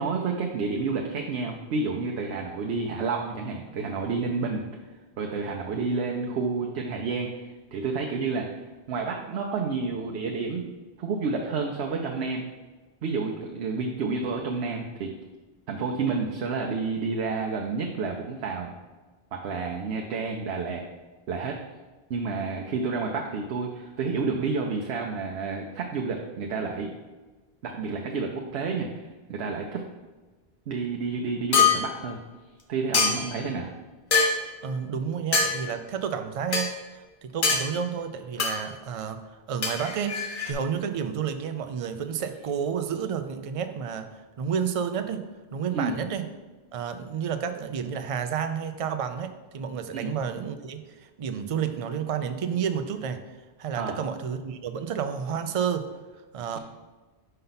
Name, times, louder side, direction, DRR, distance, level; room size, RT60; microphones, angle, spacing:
voice 1, 0.0-4.7 5.2-8.5 8.9-10.7 11.0-12.4 13.0-15.1 15.7-18.8 19.3-20.8 21.3-21.6 22.1-26.9 27.6-29.0 29.3-29.9 30.7-32.2 32.7-33.7 45.7-45.9 49.9-50.1 53.8-54.0, right 4 dB, 85° right, 1 dB, 0.9 m, -30 dB
sound 1, 31.5-31.8 32.9-33.4 34.1-34.4 35.3-35.5 36.5-36.7 37.4-37.6 38.4-38.6 39.6-40.5, left 5 dB, 55° left, 0.9 m, -23 dB
voice 2, 34.6-36.7 37.2-46.2 46.7-53.2 53.6-55.9 56.3-56.6, right 7 dB, 50° right, 8 dB, 0.4 m, -30 dB
5.5 x 5.4 x 4.0 m, 1.3 s
omnidirectional pair, 1.1 m